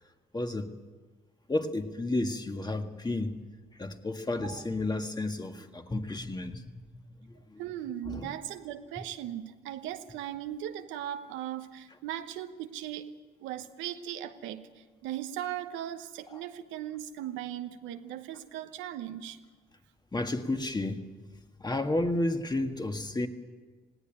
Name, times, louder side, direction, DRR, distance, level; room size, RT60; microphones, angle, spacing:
voice 1, 0.3-0.7 1.5-3.4 3.7-6.6 7.2-7.6 8.1-8.3 16.3-16.4 20.1-21.0 21.6-23.3, left 2 dB, 20° left, 6 dB, 1.8 m, -32 dB
voice 2, 7.6-13.1 13.4-19.4, right 11 dB, 90° right, 8 dB, 1.1 m, -38 dB
18.0 x 17.5 x 9.1 m, 1.4 s
supercardioid pair, 70°, 19 cm